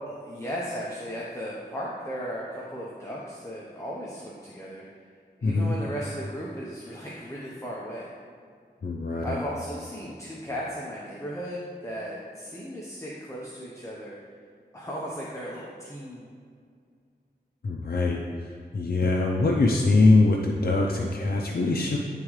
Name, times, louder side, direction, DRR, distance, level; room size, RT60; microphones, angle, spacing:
voice 1, 0.1-4.8 5.4-8.1 9.2-14.1 14.7-16.3, equal, 15° left, -5 dB, 0.9 m, -36 dB
voice 2, 5.4-5.7 8.8-9.4 17.6-22.0, left 3 dB, 60° left, -1 dB, 0.6 m, -23 dB
10.5 x 3.7 x 3.2 m, 2.1 s
wide cardioid pair, 60°, 17 cm